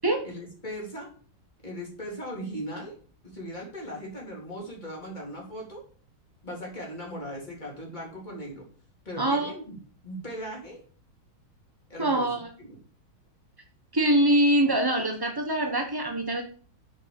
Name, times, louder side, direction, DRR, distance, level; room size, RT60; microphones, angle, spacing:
voice 1, 0.2-1.1 1.6-3.0 3.2-5.8 6.4-8.7 9.1-9.8 10.0-10.8 11.9-12.8, equal, 20° left, -3 dB, 3.6 m, -38 dB
voice 2, 9.2-9.5 12.0-12.5 13.9-16.4, right 1 dB, 25° right, 3 dB, 0.5 m, -24 dB
7.6 x 6.0 x 7.1 m, 0.43 s
omnidirectional pair, 2.3 m